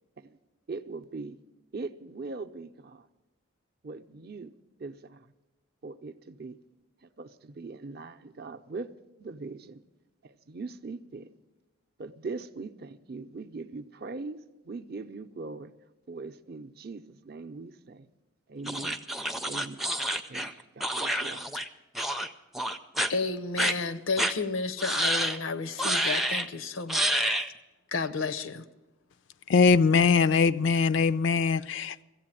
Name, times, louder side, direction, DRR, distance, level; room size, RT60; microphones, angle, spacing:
voice 1, 0.7-1.4 1.7-3.1 3.8-4.5 4.8-5.3 5.8-6.6 7.0-8.9 9.2-9.8 10.2-11.3 12.0-15.7 16.1-18.1 18.5-19.1 19.5-19.9 20.3-21.5, right 3 dB, 50° right, 0.5 m, -41 dB
sound 1, 18.7-21.7 21.9-22.3 22.5-23.1 23.6-23.7 24.2-24.3 24.8-25.4 25.8-26.5 26.9-27.5, right 1 dB, ahead, 0.4 m, -28 dB
voice 2, 23.1-27.0 27.9-28.7, left 4 dB, 85° left, 0.7 m, -32 dB
voice 3, 29.5-32.0, left 5 dB, 65° left, 0.4 m, -22 dB
15.0 x 8.3 x 8.8 m
head